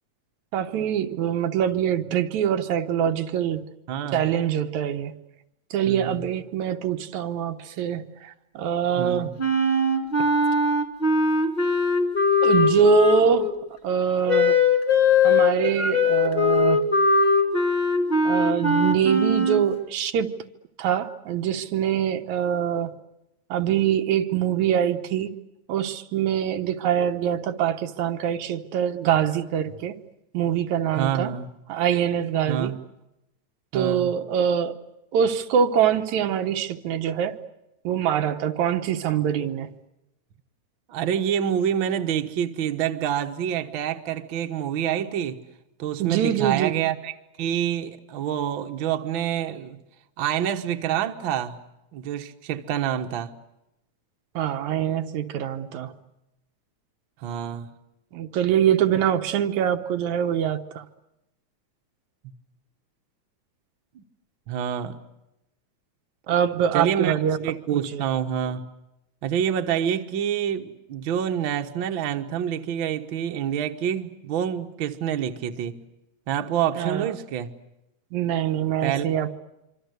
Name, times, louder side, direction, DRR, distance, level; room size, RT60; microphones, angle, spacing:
voice 1, 0.5-3.6 4.1-5.1 5.7-9.3 12.4-13.5 13.8-14.6 15.2-16.8 18.2-20.3 20.8-22.9 23.5-25.3 25.7-30.0 30.3-31.3 31.7-32.7 33.7-34.8 35.1-37.4 37.8-39.7 46.0-46.7 54.4-55.9 58.1-60.8 66.3-67.4 67.7-68.0 76.8-77.1 78.1-79.4, right 9 dB, 75° right, 2.5 m, -24 dB
voice 2, 3.9-4.2 5.9-6.3 9.0-9.3 31.0-31.5 32.5-32.8 33.7-34.1 40.9-45.4 45.8-49.8 50.2-51.6 51.9-53.3 57.2-57.7 64.0-64.1 64.5-65.0 66.7-67.2 67.4-68.7 69.2-75.8 76.3-77.5 78.8-79.1, right 9 dB, 50° right, 1.7 m, -27 dB
Wind instrument woodwind instrument, 9.4-13.5 14.3-19.7, left 3 dB, 15° left, 2.2 m, -20 dB
26.0 x 25.5 x 8.1 m
omnidirectional pair, 3.4 m